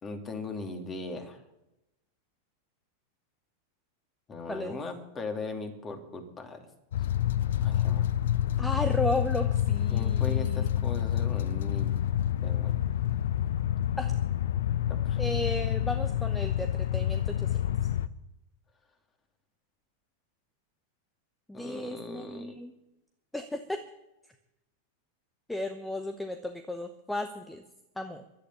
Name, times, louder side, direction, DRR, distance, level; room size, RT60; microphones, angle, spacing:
voice 1, 0.0-1.4 4.3-6.6 7.6-8.1 9.9-12.0 12.4-12.8 14.9-15.2 21.5-22.6, left 3 dB, 20° left, 5 dB, 2.7 m, -39 dB
voice 2, 4.5-4.8 8.6-10.7 14.0-14.1 15.2-17.6 21.5-22.7 23.3-23.8 25.5-27.6 28.0-28.2, left 1 dB, 5° left, 8 dB, 1.0 m, -34 dB
sound 1, 6.9-18.1, left 11 dB, 60° left, 0.6 m, -28 dB
11.5 x 9.9 x 9.7 m, 0.92 s
figure-of-eight pair, 90°, 0 cm